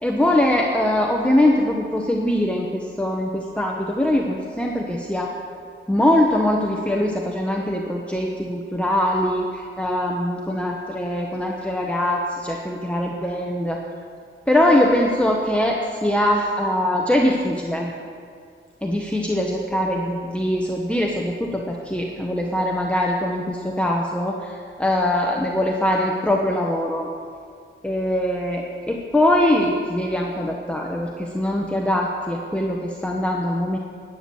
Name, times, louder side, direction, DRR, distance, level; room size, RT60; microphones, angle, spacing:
voice 1, 0.0-5.3 5.9-13.8 14.5-17.9 18.8-24.5 24.8-27.1 27.8-33.8, left 1 dB, 5° left, -1 dB, 1.1 m, -22 dB
12.0 x 9.4 x 7.1 m, 2.2 s
wide cardioid pair, 65°, 21 cm